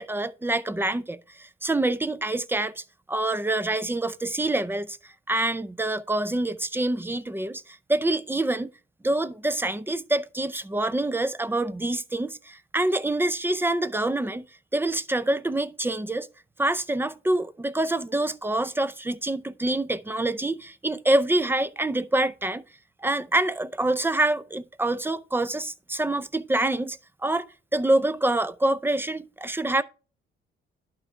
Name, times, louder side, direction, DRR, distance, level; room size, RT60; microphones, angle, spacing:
voice 1, 0.0-5.0 5.3-8.7 9.0-14.4 14.7-16.3 16.6-22.6 23.0-27.5 27.7-29.8, right 2 dB, 10° right, 0.5 m, -26 dB
11.5 x 4.5 x 3.6 m
cardioid pair, 90°, 20 cm